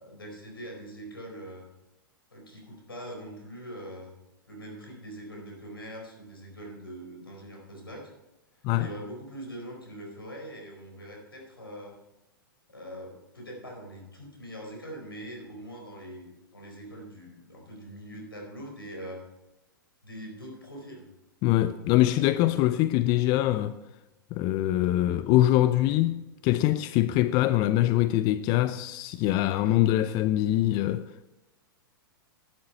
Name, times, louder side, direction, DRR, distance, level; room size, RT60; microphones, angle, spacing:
voice 1, 0.0-1.7 2.3-4.1 4.5-8.1 8.5-12.0 12.7-19.2 20.0-21.1, right 1 dB, 90° left, 4.5 m, -43 dB
voice 2, 21.4-23.8 24.3-31.2, left 14 dB, 35° left, 0.5 m, -24 dB
11.5 x 10.5 x 4.4 m
figure-of-eight pair, 105°, 12 cm